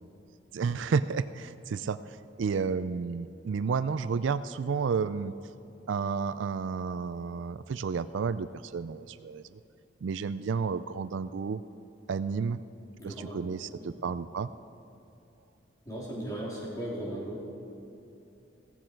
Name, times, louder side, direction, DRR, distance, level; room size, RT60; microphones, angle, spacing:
voice 1, 0.5-5.3 5.9-9.6 10.0-11.6 12.1-12.6 13.0-14.5, right 5 dB, 70° right, 14 dB, 0.4 m, -31 dB
voice 2, 13.0-13.9 15.9-17.4, right 1 dB, 20° left, -5 dB, 3.4 m, -38 dB
16.0 x 15.0 x 4.6 m, 2.8 s
head